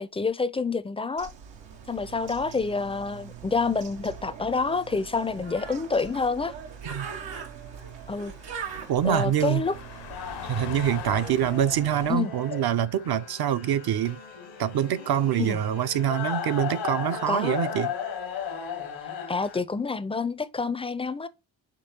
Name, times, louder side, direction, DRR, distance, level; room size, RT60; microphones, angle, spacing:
voice 1, 0.0-1.3 1.9-6.5 8.1-8.3 9.0-9.8 12.1-12.3 15.4-15.6 17.3-17.6 19.3-21.3, left 4 dB, 15° left, 0.4 m, -28 dB
Bird, 1.2-12.2, right 7 dB, 90° right, 0.8 m, -42 dB
Car passing by, 4.5-16.4 16.7-17.0, left 10 dB, 70° left, 0.7 m, -48 dB
voice 2, 8.9-9.6 10.4-14.2 14.6-17.9, right 10 dB, 60° right, 0.5 m, -25 dB
sound 1, 10.0-19.6, left 7 dB, 85° left, 1.2 m, -36 dB
5.3 x 3.1 x 2.8 m
supercardioid pair, 45°, 44 cm